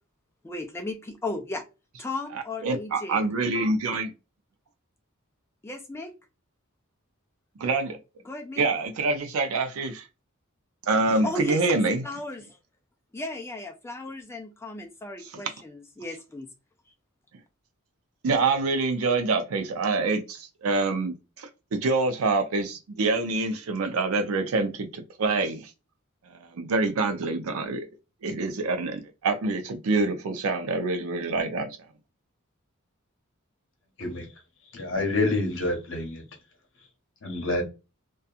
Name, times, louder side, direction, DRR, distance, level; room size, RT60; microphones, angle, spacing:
voice 1, 0.4-1.6 2.0-3.2 5.6-6.1 8.3-8.6 11.1-12.6 13.1-16.5, left 2 dB, 10° left, 0.3 m, -35 dB
voice 2, 2.6-4.1 7.6-8.0 8.6-10.1 10.8-12.0 15.2-15.4 18.2-25.7 26.2-27.9 28.2-31.8, right 3 dB, 80° right, 0.4 m, -26 dB
voice 3, 34.7-36.2 37.2-37.6, left 2 dB, 60° left, 0.9 m, -27 dB
2.7 x 2.3 x 2.3 m
head